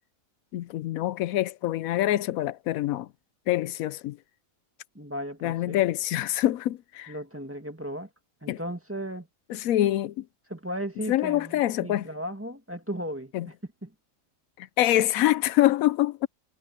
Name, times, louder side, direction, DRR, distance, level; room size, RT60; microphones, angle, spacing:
voice 1, 0.5-3.1 3.5-4.2 5.4-7.1 8.5-8.6 9.5-10.2 11.1-12.1 13.3-13.5 14.6-16.3, left 14 dB, 80° left, 1.0 m, -25 dB
voice 2, 4.9-5.8 7.1-8.1 8.4-9.3 10.5-13.5 13.8-13.9, equal, 10° right, 1.8 m, -36 dB
omnidirectional pair, 1.4 m